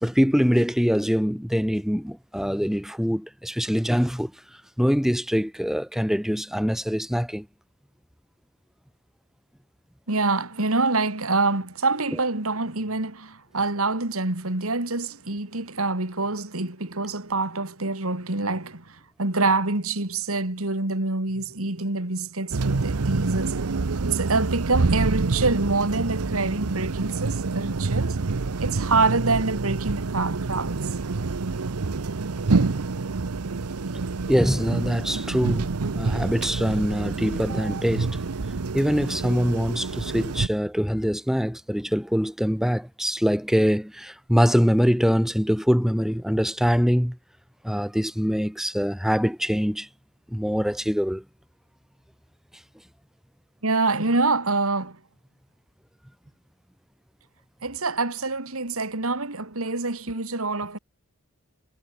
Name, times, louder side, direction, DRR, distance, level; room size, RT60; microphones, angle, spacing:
voice 1, 0.0-4.3 4.8-7.5 34.3-38.2 38.7-47.2 47.6-49.9 50.3-51.2, equal, ahead, 2.8 m, -23 dB
voice 2, 10.1-23.6 24.0-28.2 28.6-30.9 53.6-55.0 57.6-60.8, right 3 dB, 70° right, 2.9 m, -26 dB
sound 1, 22.5-40.5, right 3 dB, 90° right, 0.8 m, -27 dB
head